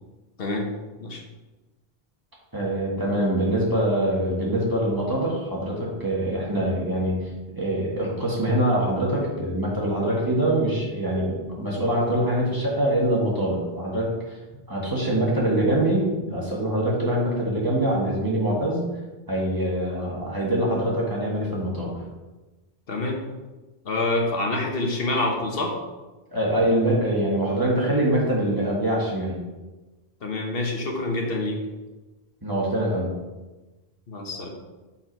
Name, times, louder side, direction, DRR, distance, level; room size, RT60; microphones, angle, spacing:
voice 1, 0.4-0.7 1.0-1.2 22.9-23.2 23.8-25.8 30.2-31.6 34.1-34.5, left 2 dB, 65° left, 1 dB, 1.3 m, -26 dB
voice 2, 2.5-14.4 14.7-18.8 19.3-21.9 26.3-29.4 32.4-33.1, right 1 dB, 20° right, -5 dB, 1.6 m, -24 dB
5.7 x 4.7 x 4.6 m, 1.2 s
omnidirectional pair, 1.1 m